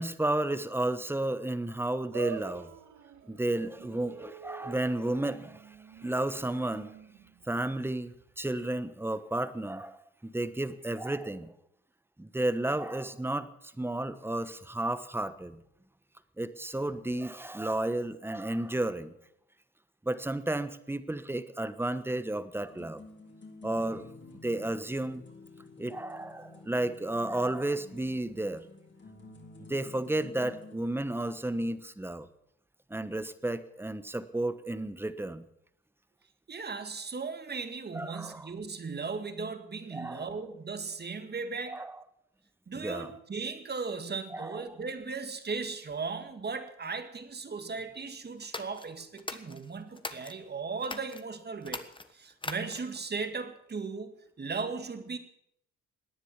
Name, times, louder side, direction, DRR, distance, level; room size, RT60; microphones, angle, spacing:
voice 1, 0.0-2.7 3.2-5.8 6.0-6.9 7.5-11.5 12.2-15.6 16.4-19.1 20.0-23.0 23.6-24.1 24.4-25.2 25.8-28.6 29.6-32.3 32.9-35.4 37.9-38.5 39.9-40.3 41.7-42.0 42.8-43.1 44.3-44.6, right 1 dB, 5° right, 13 dB, 1.1 m, -32 dB
sound 1, 2.1-8.6, right 11 dB, 75° right, 1.6 m, -46 dB
sound 2, 22.5-30.8, left 3 dB, 40° left, 3.6 m, -50 dB
voice 2, 36.5-41.8 42.7-51.8 52.1-55.2, right 4 dB, 35° right, 9 dB, 2.0 m, -37 dB
sound 3, 48.4-50.4 50.8-51.2 51.6-53.0, left 3 dB, 15° left, 1.4 m, -41 dB
18.0 x 9.9 x 7.3 m, 0.73 s
cardioid pair, 90°, 30 cm